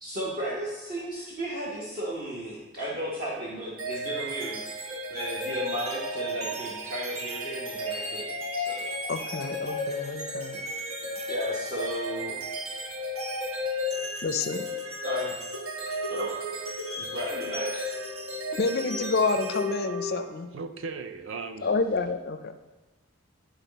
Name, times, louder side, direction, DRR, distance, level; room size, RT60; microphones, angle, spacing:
voice 1, 0.0-4.6 5.1-8.9 10.0-10.2 11.3-12.4 15.0-15.3 16.1-16.3 17.0-17.9, equal, 45° right, -6 dB, 1.0 m, -34 dB
sound 1, 3.8-20.4, left 1 dB, 80° right, 1.6 m, -34 dB
voice 2, 9.1-10.6 14.2-14.7 18.6-20.5 21.6-22.5, left 4 dB, 45° left, 9 dB, 0.4 m, -28 dB
voice 3, 20.5-21.8, right 4 dB, 65° right, 9 dB, 0.4 m, -37 dB
11.0 x 4.0 x 4.0 m, 1.1 s
head